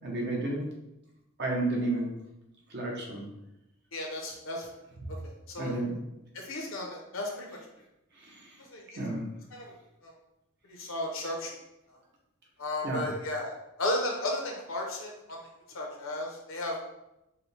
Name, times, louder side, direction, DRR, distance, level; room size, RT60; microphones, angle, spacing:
voice 1, 0.0-0.6 1.4-2.1 2.7-3.2 5.6-5.9 8.2-8.5 9.0-9.2 12.8-13.1, right 2 dB, 55° right, -2 dB, 1.0 m, -31 dB
voice 2, 3.9-4.7 5.1-5.7 6.3-7.6 8.7-9.0 9.5-9.7 10.0-10.1 10.7-11.5 12.6-13.5 13.8-15.4 15.7-16.9, left 1 dB, 70° left, 0 dB, 0.9 m, -34 dB
4.9 x 2.3 x 3.3 m, 0.89 s
head